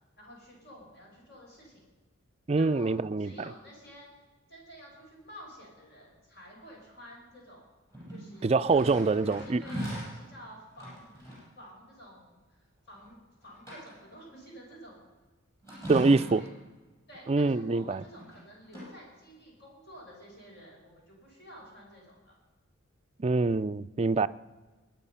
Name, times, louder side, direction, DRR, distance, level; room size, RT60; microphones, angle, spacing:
voice 1, 0.2-1.8 2.6-4.1 4.5-7.7 8.1-8.8 9.3-11.3 11.5-15.0 15.7-16.5 17.1-22.3, equal, 55° left, 6.0 m, -51 dB
voice 2, 2.5-3.3 8.4-9.6 15.9-16.4 17.3-18.0 23.2-24.3, right 3 dB, 30° right, 0.4 m, -25 dB
sound 1, 7.9-10.2 10.7-11.5 12.9-13.1 13.4-14.2 15.6-16.6 17.8-18.4 18.7-18.9, equal, 15° left, 6.2 m, -40 dB
21.0 x 9.3 x 5.6 m
head